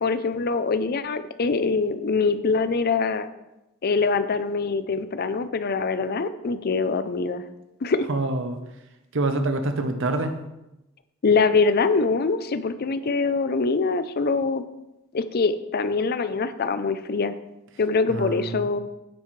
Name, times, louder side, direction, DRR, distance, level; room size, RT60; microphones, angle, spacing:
voice 1, 0.0-3.3 3.8-7.4 7.8-8.1 11.2-14.6 15.1-17.3 17.8-18.8, left 4 dB, 45° left, 12 dB, 0.5 m, -24 dB
voice 2, 8.1-8.6 9.1-10.4 18.1-18.7, right 2 dB, 65° right, 7 dB, 0.9 m, -26 dB
9.4 x 7.7 x 3.2 m, 0.95 s
head